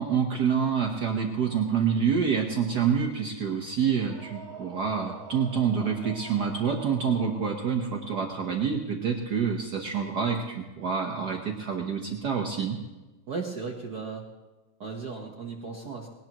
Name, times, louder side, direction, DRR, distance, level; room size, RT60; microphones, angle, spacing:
voice 1, 0.0-12.8, right 6 dB, 85° right, 1 dB, 0.8 m, -27 dB
sound 1, 4.0-8.0, right 4 dB, 40° right, 5.0 m, -46 dB
voice 2, 13.3-14.2 14.8-16.1, right 4 dB, 60° right, 1 dB, 1.0 m, -36 dB
20.5 x 18.0 x 3.0 m, 1.2 s
omnidirectional pair, 3.4 m